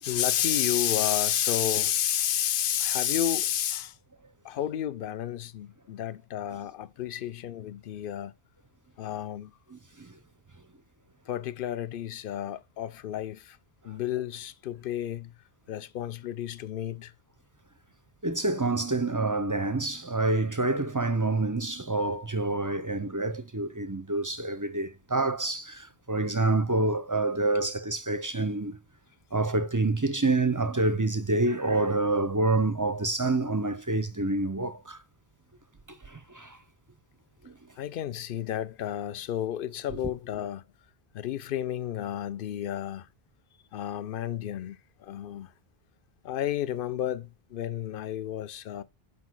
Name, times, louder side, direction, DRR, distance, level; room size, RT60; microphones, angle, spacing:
voice 1, 0.0-4.0 4.4-8.3 9.0-9.5 11.3-13.6 13.8-15.3 15.7-17.1 37.8-40.6 41.1-43.1 43.7-45.5 46.2-48.8, left 11 dB, 65° left, 0.7 m, -31 dB
voice 2, 9.7-10.1 18.2-28.8 29.3-35.0 35.9-36.6 37.4-37.5, right 2 dB, 25° right, 0.4 m, -27 dB
6.2 x 5.3 x 4.5 m
omnidirectional pair, 1.0 m